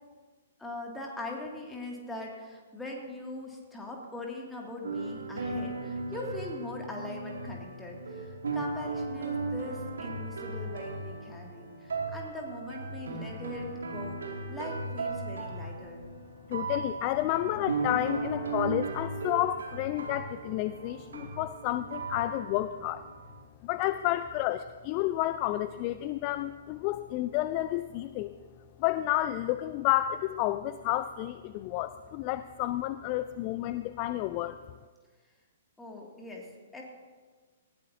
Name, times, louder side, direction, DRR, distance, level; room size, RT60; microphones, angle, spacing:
voice 1, 0.6-14.2 14.5-16.0 35.8-36.8, left 2 dB, 5° left, -1 dB, 2.2 m, -41 dB
sound 1, 4.8-23.4, right 3 dB, 65° right, 2.2 m, -36 dB
voice 2, 16.5-23.1 23.6-28.3 28.8-34.6, left 14 dB, 30° left, 12 dB, 0.4 m, -30 dB
19.0 x 15.5 x 2.7 m, 1.4 s
figure-of-eight pair, 115°, 0 cm